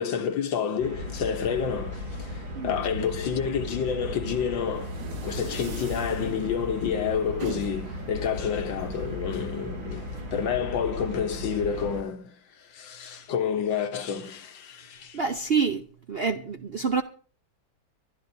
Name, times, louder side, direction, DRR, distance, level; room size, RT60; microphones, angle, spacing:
voice 1, 0.0-15.2, left 7 dB, 80° left, 1.9 m, -29 dB
sound 1, 0.8-12.0, left 1 dB, 90° right, 3.6 m, -36 dB
sound 2, 4.4-10.2, right 3 dB, 70° right, 2.2 m, -42 dB
voice 2, 15.1-15.8 16.1-17.0, right 5 dB, 55° right, 0.7 m, -26 dB
23.5 x 12.5 x 2.7 m
omnidirectional pair, 2.0 m